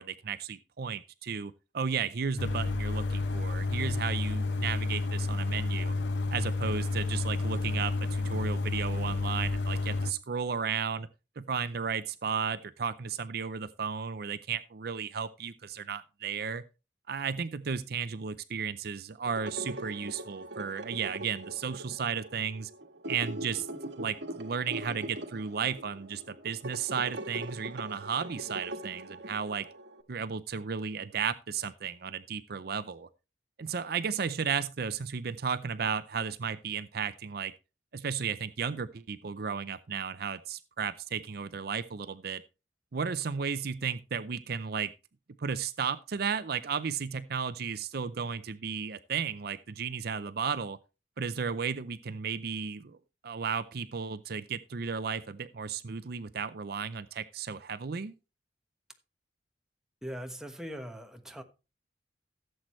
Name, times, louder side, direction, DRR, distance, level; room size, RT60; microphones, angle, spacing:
voice 1, 0.0-5.9 6.3-11.1 11.4-16.6 17.1-22.7 23.1-29.7 30.1-33.1 33.6-37.5 37.9-42.4 42.9-44.9 45.4-50.8 51.2-53.0 53.2-58.1, right 6 dB, 60° right, 0.5 m, -34 dB
sound 1, 2.4-10.1, left 3 dB, 80° left, 0.8 m, -30 dB
sound 2, 19.3-30.0, right 1 dB, 80° right, 1.5 m, -42 dB
voice 2, 60.0-61.4, equal, 5° right, 1.2 m, -40 dB
15.5 x 7.6 x 3.1 m
head